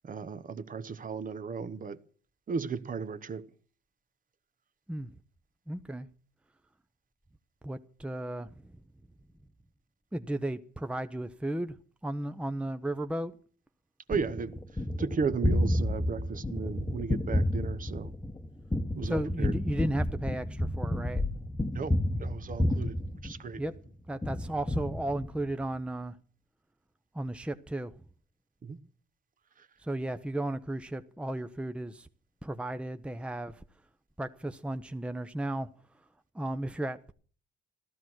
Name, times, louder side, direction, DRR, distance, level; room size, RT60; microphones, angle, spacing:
voice 1, 0.0-2.0 2.5-3.5 14.1-14.6 15.0-18.1 18.9-19.5 21.7-23.0 23.2-23.6 28.6-28.8 29.6-29.7, right 5 dB, 45° right, 1.1 m, -35 dB
voice 2, 5.7-6.1 7.6-8.5 10.1-11.8 12.0-13.3 19.0-21.2 23.6-23.7 24.1-26.2 27.1-27.9 29.8-32.1 32.4-33.6 34.2-35.7 36.3-37.1, right 1 dB, 5° right, 0.7 m, -34 dB
Gunshot gunfire, 14.1-23.8 24.2-25.6, left 1 dB, 10° left, 1.1 m, -31 dB
15.0 x 13.0 x 6.2 m
cardioid pair, 90°, 20 cm